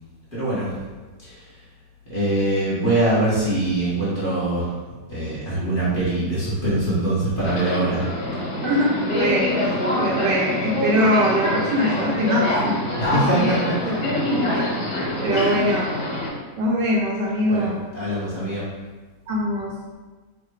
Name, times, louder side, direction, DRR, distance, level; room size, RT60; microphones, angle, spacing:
voice 1, 0.3-0.7 1.2-1.4 2.1-4.8 5.1-8.1 13.0-13.9 15.3-15.7 17.5-18.7, right 1 dB, 30° left, -11 dB, 1.2 m, -23 dB
Subway metro underground, 7.4-16.3, left 1 dB, 85° left, 1.8 m, -25 dB
voice 2, 8.6-12.8 13.1-13.5 15.2-15.9 16.6-17.8 19.3-19.7, equal, 70° right, -3 dB, 1.2 m, -22 dB
3.6 x 2.5 x 4.6 m, 1.3 s
omnidirectional pair, 2.1 m